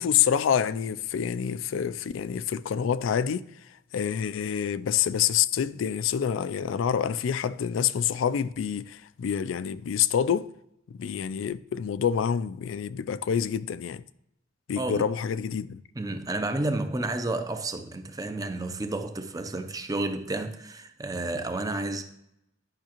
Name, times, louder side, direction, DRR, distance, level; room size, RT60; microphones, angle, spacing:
voice 1, 0.0-3.5 3.9-10.5 10.9-14.0 14.7-15.8, left 8 dB, 90° left, 0.4 m, -27 dB
voice 2, 14.8-15.1 15.9-22.0, right 2 dB, 20° right, 0.6 m, -31 dB
11.0 x 5.7 x 3.0 m
head